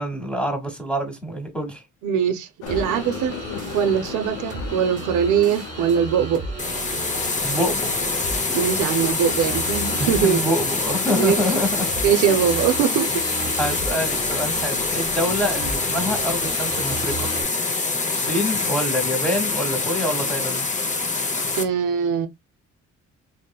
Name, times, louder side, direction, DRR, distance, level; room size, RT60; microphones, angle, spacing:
voice 1, 0.0-1.8 7.4-7.9 10.0-11.9 12.2-12.4 13.6-17.3 18.1-20.6, equal, 5° left, 1.1 m, -26 dB
voice 2, 2.0-3.3 3.7-6.4 8.5-10.4 11.2-11.4 12.0-13.1 21.6-22.3, right 8 dB, 80° right, 0.5 m, -21 dB
sound 1, 2.6-10.3, left 7 dB, 85° left, 0.5 m, -38 dB
sound 2, 2.7-17.4, right 4 dB, 25° right, 0.9 m, -35 dB
sound 3, 6.6-21.6, left 3 dB, 25° left, 0.5 m, -25 dB
2.8 x 2.1 x 2.2 m
cardioid pair, 90°, 30 cm